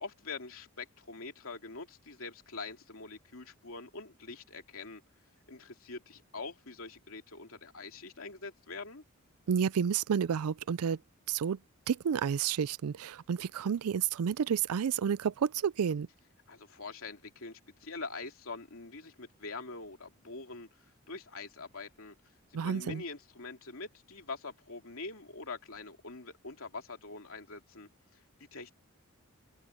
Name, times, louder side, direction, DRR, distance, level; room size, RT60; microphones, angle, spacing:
voice 1, 0.0-5.0 5.5-9.0 16.5-20.7 21.1-22.1 22.5-28.7, left 3 dB, 65° left, 3.0 m, -44 dB
voice 2, 9.5-11.0 11.3-11.6 11.9-16.1 22.5-23.0, right 7 dB, 85° right, 0.4 m, -30 dB
head